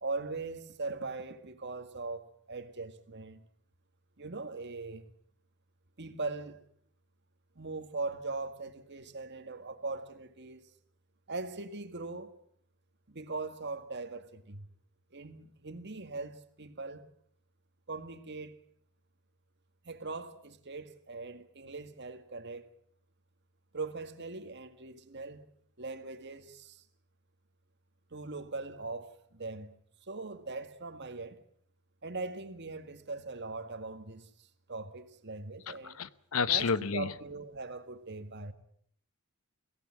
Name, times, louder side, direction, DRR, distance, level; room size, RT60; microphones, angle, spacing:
voice 1, 0.0-3.4 4.2-5.1 6.0-6.6 7.6-10.7 11.3-12.4 13.1-14.7 15.1-17.1 17.9-18.6 19.8-22.7 23.7-25.5 25.8-26.8 28.1-29.8 30.1-31.4 32.0-34.3 34.7-36.0 36.5-38.5, right 3 dB, 55° right, 1.9 m, -40 dB
voice 2, 35.7-37.1, left 6 dB, 75° left, 1.0 m, -31 dB
23.5 x 17.0 x 8.8 m
head